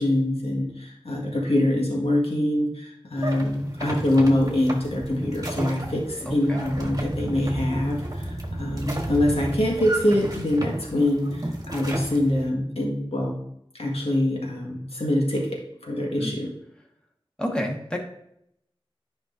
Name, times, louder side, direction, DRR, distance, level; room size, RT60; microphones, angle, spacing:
voice 1, 0.0-13.4 13.8-15.5 15.8-16.5, left 1 dB, 90° left, -2 dB, 1.8 m, -24 dB
sound 1, 3.2-12.5, right 1 dB, 35° right, 1.5 m, -33 dB
voice 2, 6.2-6.6 16.2-16.3 17.4-18.0, equal, 10° left, 0 dB, 1.5 m, -29 dB
10.5 x 5.1 x 2.7 m, 0.75 s
wide cardioid pair, 55°, 10 cm